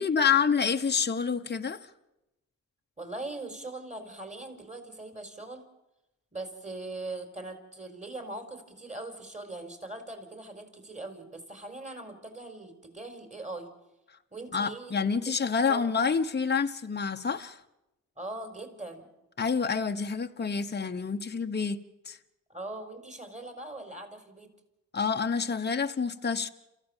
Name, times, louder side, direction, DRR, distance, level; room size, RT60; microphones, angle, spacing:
voice 1, 0.0-1.9 14.5-17.6 19.4-21.8 22.1-22.2 24.9-26.5, left 6 dB, 30° left, 1.1 m, -28 dB
voice 2, 3.0-5.6 6.3-13.7 14.3-15.0 15.3-15.4 15.7-15.9 18.2-19.1 22.5-24.5, right 2 dB, 20° right, 4.8 m, -41 dB
28.0 x 14.5 x 7.4 m
supercardioid pair, 55°, 35 cm